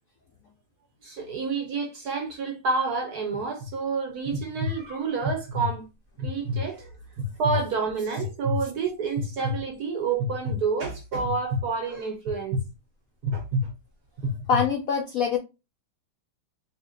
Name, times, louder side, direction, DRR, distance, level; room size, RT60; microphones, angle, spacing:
voice 1, 1.0-5.9 6.2-6.9 7.4-12.6 13.3-13.5, right 5 dB, 70° right, 1.0 m, -29 dB
sound 1, 3.3-3.7 4.3-4.7 5.2-5.7 6.2-6.6 7.2-7.6 8.2-8.6 9.2-9.5 10.2-10.6 11.2-11.6 12.3-12.6 13.2-13.6 14.2-14.6, equal, 50° right, 0.6 m, -27 dB
voice 2, 14.5-15.4, left 6 dB, 75° left, 0.7 m, -24 dB
3.1 x 2.9 x 3.7 m
omnidirectional pair, 2.2 m